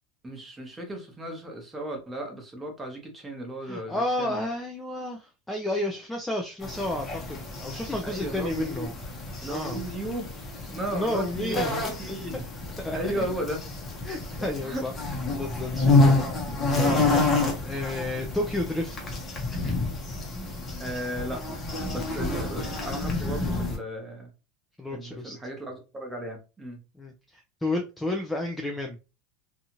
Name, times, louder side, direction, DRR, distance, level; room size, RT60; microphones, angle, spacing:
voice 1, 0.2-4.4 8.0-8.9 9.4-10.3 10.7-12.4 12.9-13.6 14.6-14.8 20.8-21.4 21.9-24.3 24.9-26.8, right 1 dB, 10° right, 2 dB, 0.8 m, -35 dB
voice 2, 3.6-8.9 9.5-9.8 10.7-11.7 12.8-13.2 14.0-14.9 15.3-16.3 16.7-19.1 19.6-19.9 24.8-25.4 27.0-29.0, left 1 dB, 5° left, 1 dB, 0.4 m, -32 dB
sound 1, 6.6-23.8, left 2 dB, 20° left, 0.8 m, -28 dB
2.7 x 2.4 x 2.8 m, 0.30 s
supercardioid pair, 150°, 0 cm